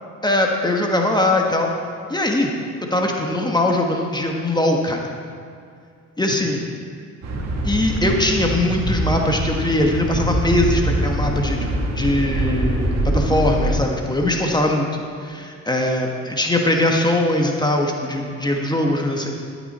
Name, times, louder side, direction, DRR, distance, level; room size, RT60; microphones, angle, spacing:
voice 1, 0.2-1.7 2.1-2.5 2.9-5.0 6.2-6.7 7.6-11.7 11.9-12.9 13.1-14.9 15.2-19.4, left 1 dB, 15° left, 1 dB, 1.4 m, -21 dB
sound 1, 7.2-13.7, right 1 dB, 60° right, 2.0 m, -23 dB
13.0 x 9.6 x 4.3 m, 2.3 s
cardioid pair, 90°, 30 cm